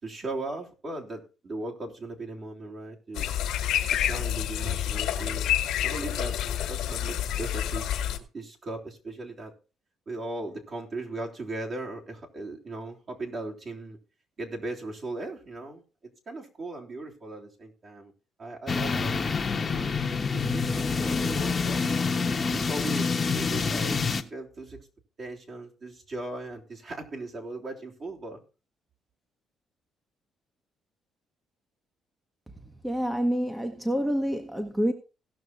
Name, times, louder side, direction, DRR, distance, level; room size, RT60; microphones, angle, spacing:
voice 1, 0.0-3.3 3.9-5.6 5.8-8.0 8.3-9.5 10.1-14.0 14.4-18.1 18.4-21.9 22.3-24.0 24.3-24.9 25.2-28.4, right 2 dB, 45° right, 3.4 m, -38 dB
sound 1, 3.2-8.2, left 11 dB, 80° left, 1.6 m, -28 dB
sound 2, 18.7-24.2, left 4 dB, 30° left, 1.1 m, -27 dB
voice 2, 32.8-34.9, equal, 10° right, 1.2 m, -27 dB
17.0 x 6.1 x 4.1 m
cardioid pair, 85°, 0 cm